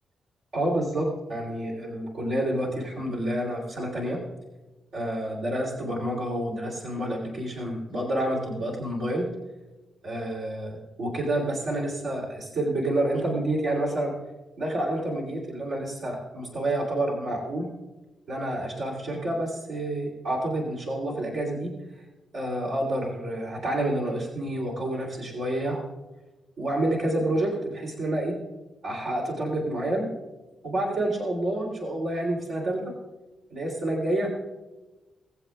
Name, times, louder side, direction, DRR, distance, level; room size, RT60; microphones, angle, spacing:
voice 1, 0.5-4.2 4.9-9.3 10.0-14.1 14.6-17.7 18.3-21.7 22.3-25.8 26.6-28.3 28.8-30.1 30.6-32.9 33.5-34.3, right 1 dB, 75° right, -4 dB, 3.2 m, -28 dB
20.5 x 7.7 x 2.5 m, 1.1 s
cardioid pair, 65°, 0 cm